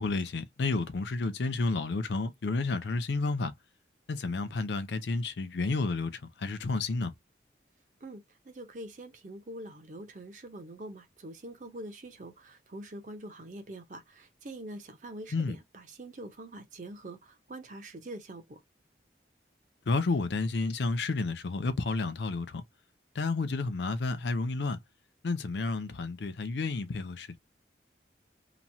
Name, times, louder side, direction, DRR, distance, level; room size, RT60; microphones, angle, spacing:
voice 1, 0.0-3.5 4.1-7.1 15.3-15.6 19.9-22.6 23.1-24.8 25.2-27.4, left 3 dB, 75° left, 0.5 m, -31 dB
voice 2, 8.0-18.6, right 1 dB, 45° right, 0.7 m, -44 dB
3.0 x 2.1 x 2.7 m
head